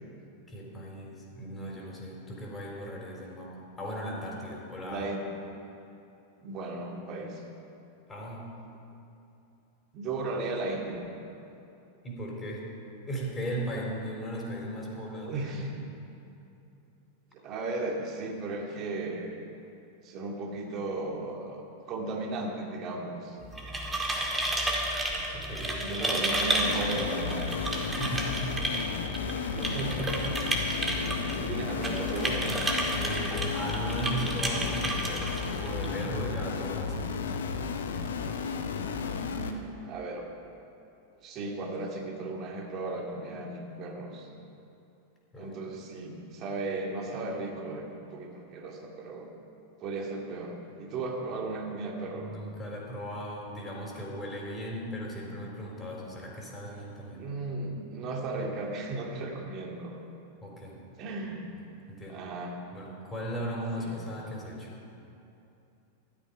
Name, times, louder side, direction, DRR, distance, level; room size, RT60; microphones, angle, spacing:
voice 1, 0.5-5.0 8.1-8.5 12.0-12.6 13.1-15.8 25.3-26.3 28.0-28.6 31.1-31.4 32.9-37.1 45.3-45.6 52.0-57.2 60.4-60.8 61.5-62.3 62.7-64.7, equal, 15° left, -3 dB, 4.1 m, -37 dB
voice 2, 4.9-5.2 6.4-7.4 9.9-11.0 15.2-15.7 17.3-19.3 20.0-21.6 21.9-23.4 25.8-27.5 29.5-30.6 31.4-32.6 39.2-40.2 41.2-44.3 45.4-49.3 49.8-52.3 57.1-60.0 61.0-61.4 62.1-62.6 63.8-63.9, right 2 dB, 35° right, 0 dB, 2.3 m, -35 dB
sound 1, 23.4-36.1, right 1 dB, 10° right, 2.1 m, -32 dB
sound 2, 26.6-39.5, left 5 dB, 65° left, 0.9 m, -33 dB
14.0 x 12.5 x 5.3 m, 2.8 s
figure-of-eight pair, 90°, 0 cm